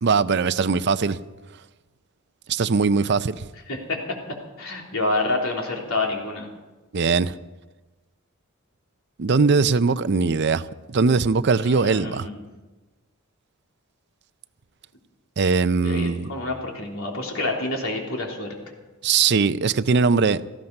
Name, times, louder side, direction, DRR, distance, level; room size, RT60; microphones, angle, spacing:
voice 1, 0.0-1.2 2.5-3.4 6.9-7.3 9.2-12.3 15.4-16.3 19.0-20.4, right 4 dB, 55° right, 0.5 m, -20 dB
voice 2, 3.7-4.0 4.6-6.5 11.6-12.4 15.8-18.6, left 2 dB, 75° left, 3.5 m, -28 dB
18.0 x 14.5 x 5.4 m
head